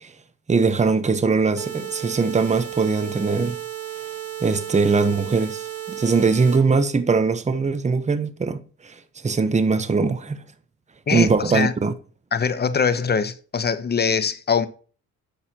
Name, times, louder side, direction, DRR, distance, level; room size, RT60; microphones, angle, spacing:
voice 1, 0.5-3.6 4.4-8.9 9.2-10.4 11.1-11.9, right 4 dB, 25° right, 1.0 m, -21 dB
sound 1, 1.6-6.6, right 10 dB, 50° right, 1.9 m, -34 dB
voice 2, 11.1-11.7 12.3-14.7, left 6 dB, 35° left, 0.9 m, -22 dB
10.5 x 6.6 x 2.9 m
cardioid pair, 90°, 30 cm